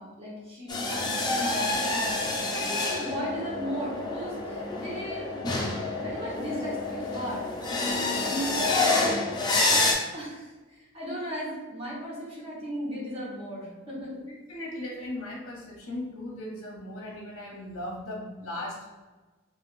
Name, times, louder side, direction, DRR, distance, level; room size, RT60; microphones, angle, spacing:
voice 1, 0.0-5.3 6.0-9.4 9.8-10.5 10.8-14.1, equal, 25° right, -6 dB, 1.1 m, -36 dB
sound 1, 0.7-9.9, left 2 dB, 20° left, 0.4 m, -28 dB
voice 2, 14.1-19.1, left 1 dB, 55° left, -2 dB, 0.7 m, -38 dB
4.8 x 2.5 x 2.5 m, 1.2 s
head